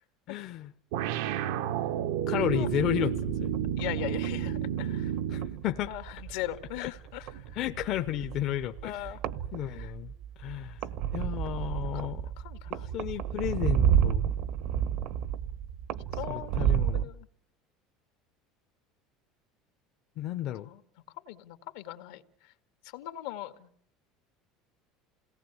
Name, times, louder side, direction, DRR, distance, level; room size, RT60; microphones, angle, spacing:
voice 1, 0.3-0.7 2.3-3.5 5.3-6.0 6.8-6.9 7.5-9.2 9.5-10.1 10.4-10.8 11.1-12.2 12.9-14.2 16.3-17.1 20.2-20.7, left 12 dB, 50° left, 8 dB, 0.9 m, -32 dB
sound 1, 0.9-5.6, right 10 dB, 85° right, 1.2 m, -31 dB
sound 2, 2.4-17.0, right 9 dB, 60° right, 1.1 m, -32 dB
voice 2, 3.8-5.1 5.9-7.3 8.8-9.2 9.7-9.9 11.9-12.0 12.4-12.9 16.2-17.3 20.6-20.8 21.3-22.2 22.9-23.7, left 14 dB, 80° left, 8 dB, 2.0 m, -39 dB
28.0 x 18.5 x 8.1 m, 0.63 s
supercardioid pair, 135°, 0 cm